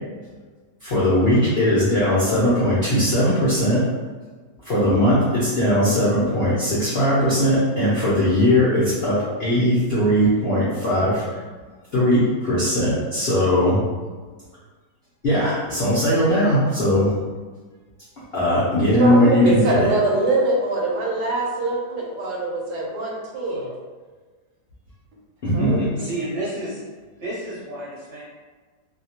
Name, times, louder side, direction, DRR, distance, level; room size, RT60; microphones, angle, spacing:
voice 1, 0.8-3.8 4.6-11.4 11.9-13.8 15.2-17.1 18.3-19.9 25.4-26.1, equal, 65° left, -9 dB, 0.6 m, -19 dB
voice 2, 18.4-23.7 25.5-25.8, right 2 dB, 75° right, -3 dB, 1.1 m, -23 dB
voice 3, 26.0-26.8 27.2-28.2, right 1 dB, 55° right, -8 dB, 0.9 m, -30 dB
2.7 x 2.2 x 2.8 m, 1.4 s
omnidirectional pair, 1.9 m